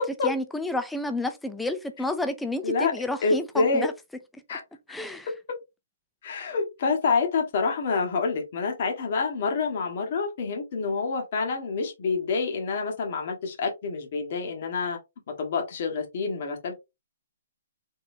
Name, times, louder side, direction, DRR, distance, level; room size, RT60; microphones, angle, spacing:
voice 1, 0.2-3.9 4.9-5.3, left 2 dB, 5° left, 0.4 m, -30 dB
voice 2, 3.2-3.9 4.5-4.6 6.2-15.0 15.4-16.7, left 4 dB, 45° left, 1.4 m, -27 dB
4.0 x 3.8 x 2.6 m
hypercardioid pair, 165°, 0 cm